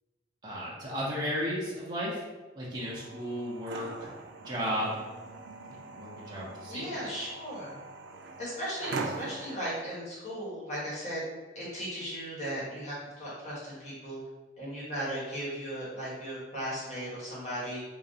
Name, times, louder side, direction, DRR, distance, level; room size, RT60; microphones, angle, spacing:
voice 1, 0.4-2.2 2.5-4.1 4.4-5.0 5.7-6.8, equal, 25° right, -6 dB, 0.8 m, -34 dB
sound 1, 2.8-9.6, right 3 dB, 90° right, 0.4 m, -41 dB
voice 2, 6.7-7.8 8.4-11.2 11.5-14.2 14.6-17.8, equal, 40° left, -7 dB, 1.2 m, -37 dB
3.8 x 2.3 x 3.9 m, 1.2 s
head